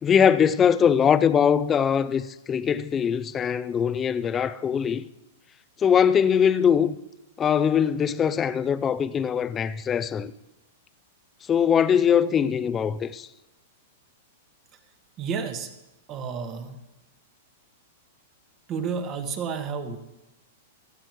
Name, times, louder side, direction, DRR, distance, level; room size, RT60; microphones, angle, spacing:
voice 1, 0.0-5.1 5.8-7.0 7.4-10.3 11.5-13.3, left 8 dB, 20° left, 0.5 m, -22 dB
voice 2, 15.2-15.7 16.1-16.8 18.7-20.0, right 6 dB, 35° right, 1.5 m, -31 dB
17.5 x 12.5 x 3.1 m
hypercardioid pair, 125°, 0 cm